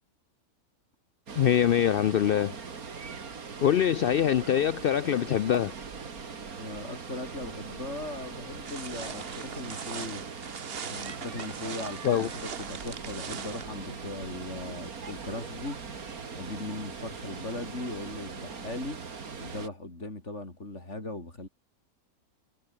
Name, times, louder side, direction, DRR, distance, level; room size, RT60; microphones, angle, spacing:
Water, 1.3-19.7, right 5 dB, 75° right, 2.6 m, -41 dB
voice 1, 1.4-2.6 3.6-5.7 12.0-12.3, left 9 dB, 80° left, 0.5 m, -24 dB
voice 2, 6.6-10.3 10.9-15.8 16.4-19.0 19.4-21.5, left 2 dB, 50° left, 5.0 m, -38 dB
sound 1, 8.7-13.6, right 6 dB, 45° right, 1.3 m, -40 dB
omnidirectional pair, 1.6 m